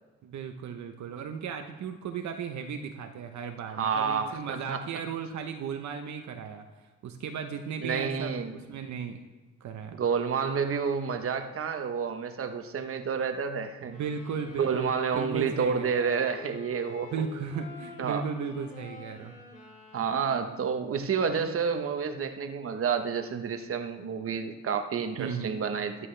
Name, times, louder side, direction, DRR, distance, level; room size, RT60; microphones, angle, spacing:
voice 1, 0.2-9.2 9.6-10.0 13.8-16.0 17.1-19.4 25.2-25.6, right 6 dB, 70° right, 6 dB, 1.0 m, -36 dB
voice 2, 3.7-4.8 7.8-8.5 9.9-14.0 14.6-17.1 18.0-18.3 19.9-26.1, right 6 dB, 45° right, 7 dB, 1.1 m, -29 dB
sound 1, 13.8-20.7, left 4 dB, 25° left, 3.0 m, -47 dB
14.0 x 11.0 x 3.4 m, 1.3 s
cardioid pair, 90°, 30 cm